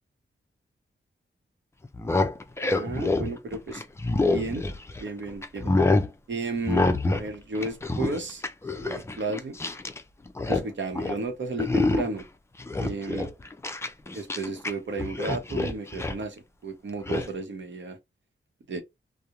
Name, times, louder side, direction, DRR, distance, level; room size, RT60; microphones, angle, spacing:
sound 1, 1.8-5.1 5.4-6.1 6.7-7.3 7.5-10.0 10.3-10.7 10.9-11.2 11.6-12.2 12.6-14.7 15.0-16.2 17.1-17.3, left 2 dB, 15° left, 0.3 m, -26 dB
voice 1, 2.7-3.8 4.3-4.7 5.0-5.7 6.3-8.4 8.7-9.6 10.5-12.2 12.8-13.3 14.1-18.0 18.7-18.8, right 3 dB, 65° right, 0.8 m, -33 dB
2.4 x 2.0 x 2.8 m
wide cardioid pair, 90°, 20 cm